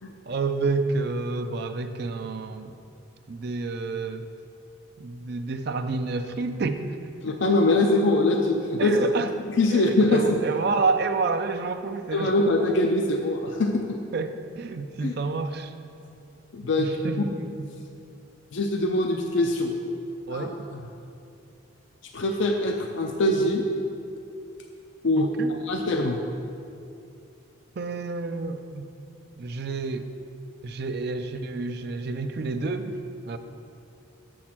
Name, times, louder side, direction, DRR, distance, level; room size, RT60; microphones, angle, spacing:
voice 1, 0.3-2.8 3.3-4.3 5.0-7.0 8.8-9.3 9.7-12.3 14.1-15.7 16.8-17.7 20.3-20.7 25.2-25.5 27.8-28.9 29.4-30.1 30.6-33.0 33.3-33.4, right 3 dB, 50° right, 8 dB, 0.4 m, -29 dB
voice 2, 7.2-9.0 9.6-10.4 12.1-14.0 15.0-15.2 16.5-17.0 18.5-19.7 20.3-20.5 22.1-23.7 25.0-26.2, left 2 dB, 60° left, 3 dB, 0.5 m, -23 dB
6.5 x 6.3 x 5.9 m, 2.5 s
head